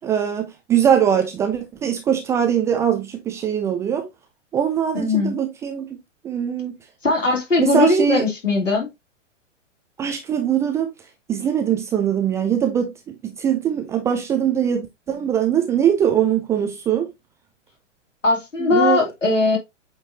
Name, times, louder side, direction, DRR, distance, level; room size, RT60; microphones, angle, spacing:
voice 1, 0.0-4.0 4.5-5.9 6.2-6.7 7.6-8.2 10.0-10.9 11.3-12.9 13.2-17.1 18.7-19.0, right 9 dB, 10° right, 0.4 m, -21 dB
voice 2, 4.9-5.4 7.0-8.9 18.2-19.6, left 3 dB, 85° left, 3.1 m, -19 dB
8.2 x 4.4 x 2.7 m
figure-of-eight pair, 115°, 37 cm